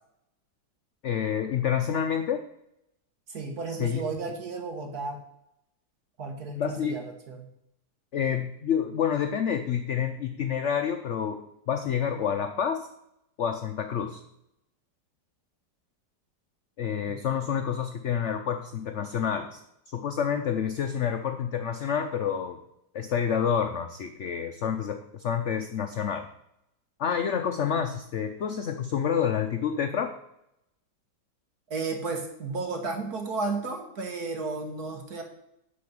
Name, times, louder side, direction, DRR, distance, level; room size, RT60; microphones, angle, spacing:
voice 1, 1.0-2.4 3.7-4.0 6.6-7.0 8.1-11.4 11.7-12.9 13.4-14.2 16.8-19.6 19.9-22.6 22.9-26.3 27.0-30.1, left 8 dB, 70° left, 6 dB, 0.7 m, -28 dB
voice 2, 3.3-5.2 6.2-7.5 17.1-17.2 31.7-35.2, right 3 dB, 60° right, 3 dB, 1.9 m, -33 dB
9.8 x 4.2 x 7.1 m, 0.81 s
omnidirectional pair, 1.9 m